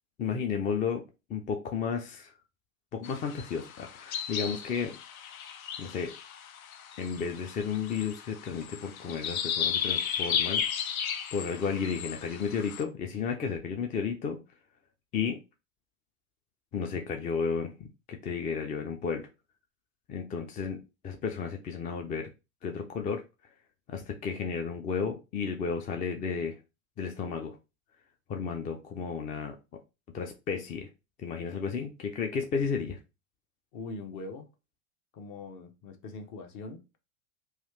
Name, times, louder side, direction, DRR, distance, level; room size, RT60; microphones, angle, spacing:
voice 1, 0.2-1.0 1.3-2.3 2.9-5.0 5.8-6.1 7.0-10.6 11.3-14.4 15.1-15.4 16.7-19.3 20.1-22.3 22.6-23.2 23.9-26.6 27.0-27.6 28.3-29.6 30.1-30.9 31.2-33.0, left 6 dB, 20° left, 0.3 m, -33 dB
sound 1, 3.0-12.8, left 8 dB, 80° left, 0.5 m, -35 dB
voice 2, 33.7-34.5 35.1-36.8, left 3 dB, 45° left, 0.9 m, -42 dB
3.1 x 2.3 x 3.1 m
hypercardioid pair, 90°, 42 cm